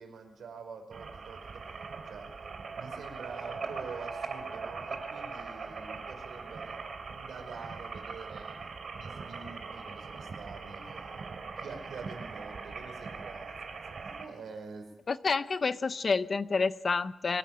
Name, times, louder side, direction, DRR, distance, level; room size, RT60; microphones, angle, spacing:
voice 1, 0.0-1.6 2.1-2.3 2.8-8.6 8.9-11.0 11.6-14.9, right 5 dB, 80° right, 6 dB, 5.1 m, -46 dB
sound 1, 0.9-14.3, right 4 dB, 55° right, 3.1 m, -41 dB
voice 2, 15.1-17.4, left 4 dB, 40° left, 13 dB, 0.8 m, -29 dB
24.5 x 16.0 x 7.7 m, 0.85 s
wide cardioid pair, 135°, 0 cm